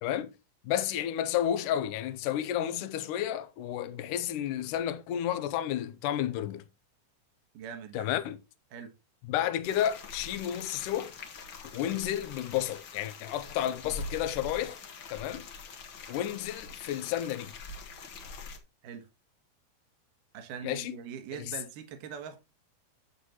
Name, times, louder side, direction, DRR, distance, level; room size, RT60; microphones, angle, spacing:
voice 1, 0.0-0.3 0.6-6.6 7.9-8.4 9.3-11.1 11.7-14.8 15.1-15.5 16.1-17.5 20.6-21.0 21.5-21.6, left 11 dB, 75° left, 2.1 m, -31 dB
voice 2, 7.5-8.1 8.7-8.9 18.8-19.1 20.3-22.4, right 7 dB, 70° right, 3.0 m, -42 dB
sound 1, 9.6-18.6, left 4 dB, 55° left, 1.4 m, -44 dB
10.5 x 7.9 x 3.0 m
omnidirectional pair, 4.1 m